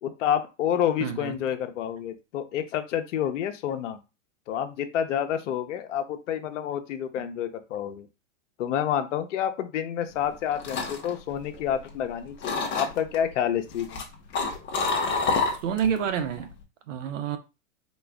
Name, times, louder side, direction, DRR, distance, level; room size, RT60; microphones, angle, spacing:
voice 1, 0.0-4.0 4.5-8.1 8.6-14.0, left 9 dB, 65° left, 0.8 m, -29 dB
voice 2, 1.0-1.4 15.6-16.5 16.9-17.4, right 8 dB, 70° right, 0.8 m, -28 dB
sound 1, 10.2-12.1 12.4-13.2 13.7-16.0 16.3-16.6, left 4 dB, 30° left, 1.0 m, -28 dB
4.2 x 2.3 x 3.4 m
hypercardioid pair, 125°, 39 cm